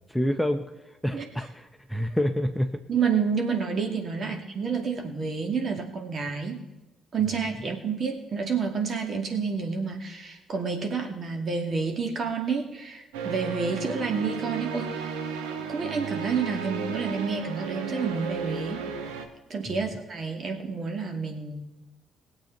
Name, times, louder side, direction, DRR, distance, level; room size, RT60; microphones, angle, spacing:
voice 1, 0.1-2.8 4.2-4.4 19.7-19.9, equal, 5° left, 6 dB, 1.1 m, -28 dB
voice 2, 2.9-6.6 7.1-15.1 15.7-18.9 19.5-21.7, right 5 dB, 50° right, 3 dB, 2.4 m, -29 dB
sound 1, 13.1-19.3, right 6 dB, 75° right, 1.2 m, -34 dB
21.0 x 8.0 x 4.5 m, 1.0 s
hypercardioid pair, 45°, 0 cm